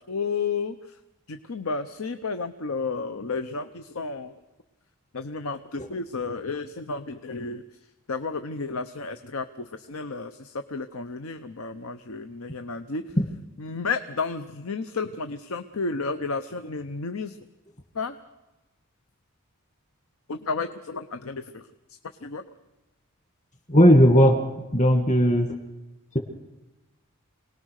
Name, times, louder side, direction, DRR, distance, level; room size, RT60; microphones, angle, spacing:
voice 1, 0.1-0.7 1.3-4.3 5.1-7.6 8.1-13.0 13.6-17.3 18.0-18.2 20.3-21.6 22.2-22.4, left 4 dB, 75° left, 9 dB, 0.8 m, -32 dB
voice 2, 23.7-24.4 24.7-25.5, equal, 35° left, 5 dB, 2.0 m, -17 dB
26.0 x 19.0 x 6.5 m, 1.0 s
head